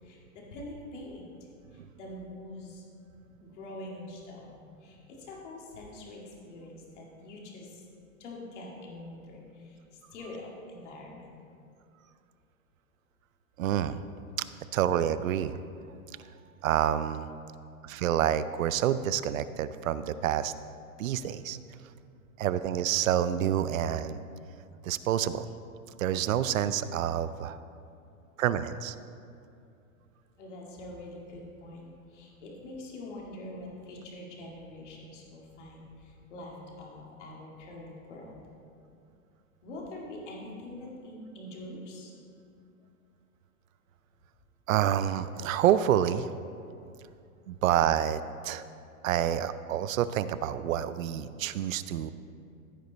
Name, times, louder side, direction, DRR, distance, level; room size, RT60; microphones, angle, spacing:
voice 1, 0.0-1.3 1.7-2.8 3.4-7.8 8.2-9.8 10.1-11.3 30.4-38.4 39.6-42.1, left 1 dB, 55° left, -2 dB, 2.2 m, -44 dB
voice 2, 13.6-14.0 14.7-15.6 16.6-17.3 17.8-20.5 21.0-21.6 22.4-24.2 24.8-25.5 26.0-27.6 28.4-28.9 44.7-46.3 47.5-48.6 49.0-52.1, right 10 dB, 70° right, 14 dB, 0.6 m, -28 dB
15.0 x 5.1 x 4.0 m, 2.5 s
hypercardioid pair, 165°, 42 cm